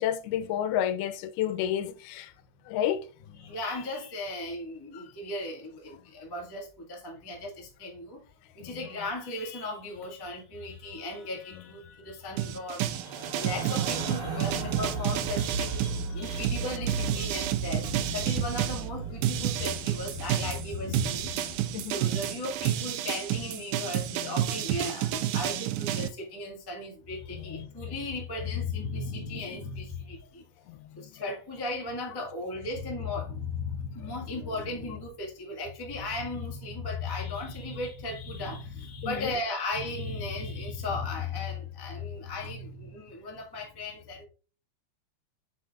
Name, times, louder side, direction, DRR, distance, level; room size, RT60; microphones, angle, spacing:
voice 1, 0.0-2.3 2.7-3.5 4.9-5.0 8.6-8.8 21.0-21.1 21.4-21.5 21.7-22.0 24.2-24.3 27.5-27.7 30.7-31.3 39.0-39.4, left 10 dB, 85° left, 2.6 m, -32 dB
voice 2, 3.4-8.2 8.5-21.3 21.9-30.4 31.0-44.3, left 3 dB, 40° left, 0.3 m, -36 dB
sound 1, 12.4-18.8 19.2-26.1, right 12 dB, 85° right, 1.7 m, -30 dB
sound 2, 12.8-22.1, right 3 dB, 35° right, 2.1 m, -36 dB
7.8 x 5.8 x 2.4 m
omnidirectional pair, 4.3 m